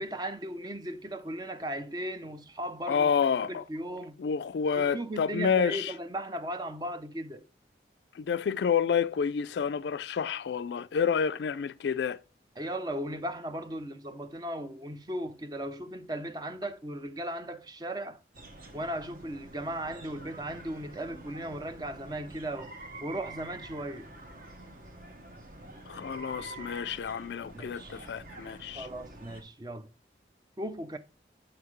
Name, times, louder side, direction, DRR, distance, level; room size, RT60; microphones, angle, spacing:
voice 1, 0.0-3.1 3.4-4.2 4.7-7.4 12.6-18.2 18.7-22.7 23.0-24.1 27.5-28.0 28.7-29.9 30.6-31.0, right 1 dB, 20° right, 0.5 m, -37 dB
voice 2, 2.9-3.6 4.2-5.9 8.1-12.2 25.9-28.9, left 6 dB, 70° left, 0.3 m, -29 dB
sound 1, 18.3-29.4, right 2 dB, 50° right, 1.1 m, -47 dB
7.3 x 5.7 x 3.1 m
head